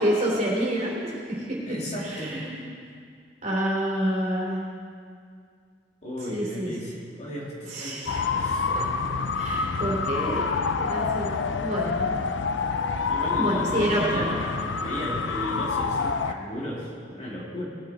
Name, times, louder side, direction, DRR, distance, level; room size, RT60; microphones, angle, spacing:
voice 1, 0.0-1.6 2.0-2.5 3.4-4.6 6.3-6.7 7.7-8.2 8.7-8.8 9.3-11.3 11.6-12.1 13.4-14.4, right 1 dB, 40° right, -5 dB, 3.4 m, -28 dB
voice 2, 1.7-2.4 6.0-8.0 8.3-8.7 13.1-17.7, equal, 40° left, -5 dB, 2.7 m, -35 dB
sound 1, 8.1-16.3, left 5 dB, 90° left, 0.5 m, -27 dB
19.0 x 8.4 x 4.2 m, 2.2 s
head